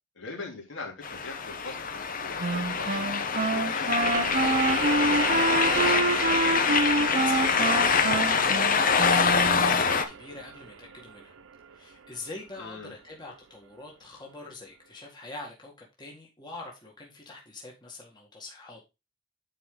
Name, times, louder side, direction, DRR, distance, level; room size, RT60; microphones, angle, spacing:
voice 1, 0.1-5.2 12.5-12.9, left 3 dB, 65° left, 3.2 m, -42 dB
sound 1, 1.0-10.0, left 5 dB, 45° left, 0.9 m, -25 dB
Wind instrument woodwind instrument, 2.4-9.8, right 2 dB, 40° right, 0.7 m, -27 dB
sound 2, 4.0-13.4, right 7 dB, 75° right, 0.7 m, -37 dB
voice 2, 6.1-11.3 11.7-18.8, left 3 dB, 20° left, 1.9 m, -44 dB
10.0 x 4.6 x 3.8 m
head